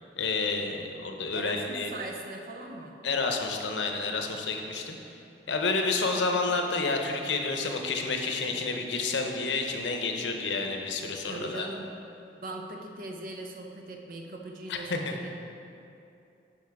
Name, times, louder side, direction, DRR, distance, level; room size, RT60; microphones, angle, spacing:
voice 1, 0.2-1.9 3.0-4.9 5.5-11.7 14.7-15.2, left 3 dB, 90° left, 3 dB, 0.7 m, -30 dB
voice 2, 1.3-3.0 11.3-11.9 12.4-15.4, right 2 dB, 50° right, 2 dB, 0.7 m, -40 dB
7.2 x 5.5 x 4.7 m, 2.7 s
head